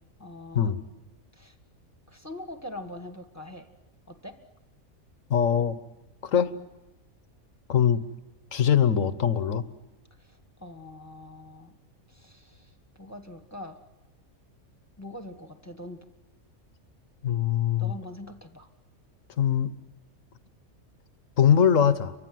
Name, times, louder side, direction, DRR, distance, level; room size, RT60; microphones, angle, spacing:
voice 1, 0.2-0.7 1.3-1.5 2.1-3.7 4.1-4.4 10.3-11.7 12.1-12.7 13.0-13.8 15.0-16.1 17.8-18.7, left 1 dB, 10° left, 7 dB, 1.5 m, -43 dB
voice 2, 5.3-5.8 6.2-6.5 7.7-8.0 8.5-9.6 17.2-17.9 19.4-19.7 21.4-22.1, left 8 dB, 65° left, 12 dB, 1.4 m, -22 dB
30.0 x 24.0 x 7.7 m, 1.0 s
omnidirectional pair, 1.5 m